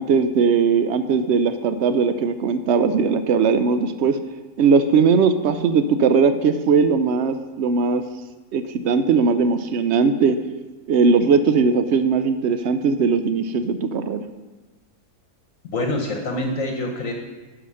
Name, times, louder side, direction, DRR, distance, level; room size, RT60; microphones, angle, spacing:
voice 1, 0.0-4.2 4.6-8.0 8.5-10.4 10.9-14.2, right 5 dB, 70° right, 10 dB, 0.6 m, -19 dB
voice 2, 15.7-17.1, left 1 dB, 60° left, 2 dB, 1.3 m, -25 dB
11.0 x 4.9 x 6.2 m, 1.2 s
omnidirectional pair, 1.7 m